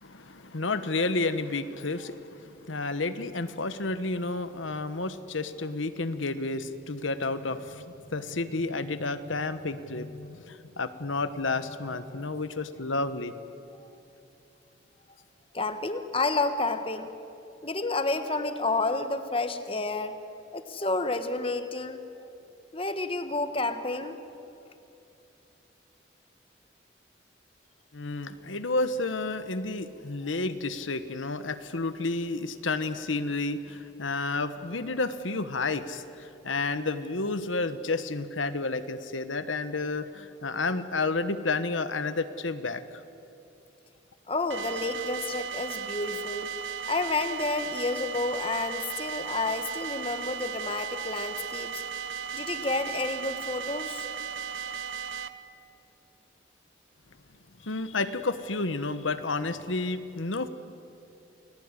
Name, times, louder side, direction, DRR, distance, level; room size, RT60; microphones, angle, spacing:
voice 1, 0.0-13.3 27.9-42.8 57.6-60.5, left 3 dB, 90° left, 11 dB, 1.3 m, -31 dB
voice 2, 15.5-17.1 17.6-20.2 20.5-22.0 22.7-24.2 44.3-46.5 46.9-51.8 52.3-54.1, left 3 dB, 30° left, 9 dB, 1.4 m, -30 dB
sound 1, 44.5-55.3, right 7 dB, 80° right, 1.1 m, -36 dB
29.0 x 19.5 x 9.9 m, 2.7 s
head